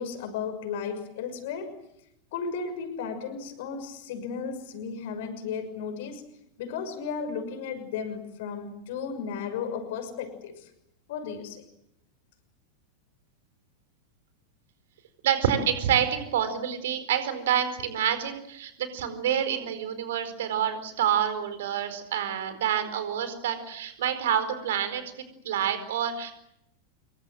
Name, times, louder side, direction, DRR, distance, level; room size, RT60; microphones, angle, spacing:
voice 1, 0.0-1.8 2.3-10.7 11.1-11.6, left 6 dB, 50° left, 9 dB, 6.3 m, -34 dB
voice 2, 15.2-25.0 25.4-26.3, right 9 dB, 60° right, 10 dB, 4.6 m, -27 dB
26.5 x 23.5 x 7.7 m, 0.78 s
figure-of-eight pair, 90°, 0 cm